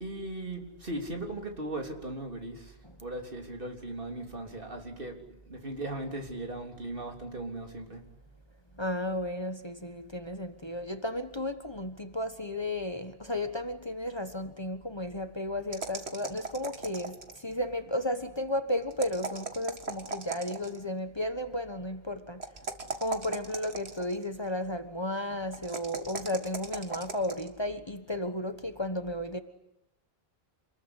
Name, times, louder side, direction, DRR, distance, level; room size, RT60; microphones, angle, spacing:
voice 1, 0.0-5.2 5.5-8.0, right 2 dB, 60° right, 3.8 m, -38 dB
voice 2, 8.8-22.4 23.0-29.4, left 1 dB, 25° left, 1.4 m, -34 dB
sound 1, 15.7-17.5 18.9-20.8 22.4-24.2 25.5-27.5, right 3 dB, 85° right, 2.2 m, -38 dB
27.5 x 21.0 x 9.9 m
omnidirectional pair, 1.0 m